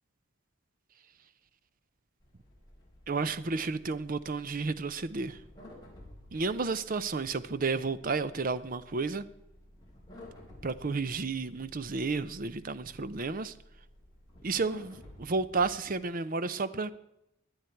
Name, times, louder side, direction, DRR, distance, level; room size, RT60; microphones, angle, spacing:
sound 1, 2.2-16.0, left 1 dB, 20° left, 4.5 m, -54 dB
voice 1, 3.1-5.4 6.3-9.2 10.6-13.5 14.4-16.9, right 4 dB, 40° right, 0.6 m, -32 dB
23.0 x 8.1 x 4.5 m
head